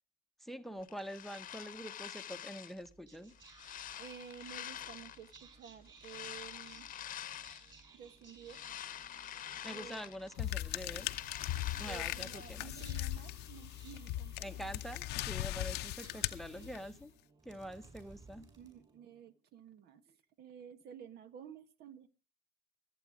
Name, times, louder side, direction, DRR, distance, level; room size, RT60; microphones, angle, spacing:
voice 1, 0.4-3.3 9.6-11.1 11.8-12.7 14.4-17.1 17.4-18.5, equal, ahead, 12 dB, 0.9 m, -45 dB
sound 1, 0.8-2.9 3.3-5.4 6.0-7.8 8.2-10.4 10.7-12.6, left 11 dB, 55° left, 0.9 m, -47 dB
Whispering, 2.7-19.3, right 4 dB, 25° right, 5.1 m, -60 dB
voice 2, 4.0-6.9 7.9-8.6 9.7-10.0 11.8-14.8 15.7-15.9 16.5-16.7 18.6-22.1, right 8 dB, 70° right, 11 dB, 1.5 m, -52 dB
sound 2, 10.4-17.0, left 14 dB, 85° left, 0.8 m, -39 dB
23.0 x 8.3 x 5.0 m, 0.34 s
cardioid pair, 110°, 17 cm